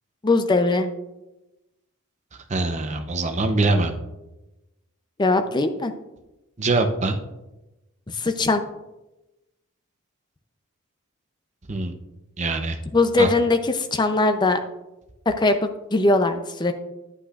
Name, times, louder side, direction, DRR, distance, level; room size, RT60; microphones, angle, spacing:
voice 1, 0.2-0.9 5.2-5.9 8.1-8.6 12.9-14.6 15.3-15.6 15.9-16.7, left 2 dB, 20° left, 7 dB, 0.5 m, -20 dB
voice 2, 2.5-3.9 6.6-7.2 11.7-11.9 12.4-12.8 13.2-13.3, right 2 dB, 35° right, 6 dB, 0.7 m, -23 dB
9.9 x 8.5 x 2.4 m, 0.99 s
head